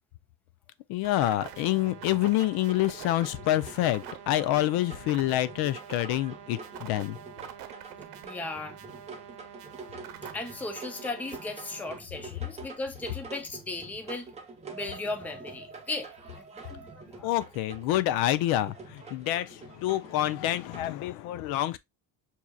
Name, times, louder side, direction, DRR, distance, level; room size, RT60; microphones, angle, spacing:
voice 1, 0.9-7.2 17.2-21.8, left 14 dB, 75° left, 0.5 m, -27 dB
sound 1, 1.0-12.0, right 10 dB, 75° right, 0.8 m, -46 dB
sound 2, 1.6-20.9, right 4 dB, 15° right, 0.8 m, -46 dB
voice 2, 8.2-8.8 10.3-14.3 14.7-17.3, left 2 dB, 5° left, 0.4 m, -37 dB
6.1 x 2.8 x 2.2 m
cardioid pair, 155°, 38 cm